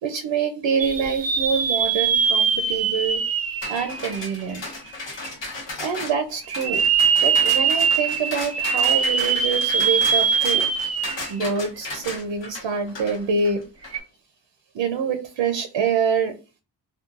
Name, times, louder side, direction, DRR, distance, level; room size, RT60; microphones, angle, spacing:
voice 1, 0.0-3.2 3.7-4.6 5.4-5.5 5.8-6.8 7.2-10.7 11.3-13.6 14.7-16.3, right 6 dB, 80° right, 7 dB, 0.6 m, -26 dB
sound 1, 0.8-4.8 5.3-5.4 6.4-11.4 11.8-11.9 13.8-14.0, right 6 dB, 35° right, 0.5 m, -22 dB
sound 2, 3.6-14.0, left 2 dB, 70° left, 1.0 m, -35 dB
2.9 x 2.3 x 2.4 m, 0.30 s
cardioid pair, 55°, 45 cm